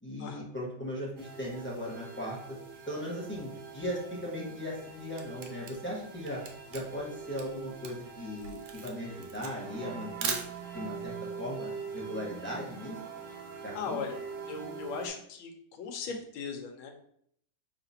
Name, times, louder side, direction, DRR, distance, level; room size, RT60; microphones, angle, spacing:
voice 1, 0.0-2.4 2.9-6.4 6.7-10.3 10.7-13.0 13.6-14.0, equal, 10° left, -5 dB, 0.8 m, -38 dB
sound 1, 1.2-15.1, right 5 dB, 60° right, 0.8 m, -44 dB
Camera, 4.7-11.0, right 6 dB, 85° right, 1.5 m, -40 dB
voice 2, 13.7-14.2 14.5-16.9, left 5 dB, 80° left, 4 dB, 1.5 m, -38 dB
5.0 x 3.7 x 2.7 m, 0.67 s
omnidirectional pair, 2.2 m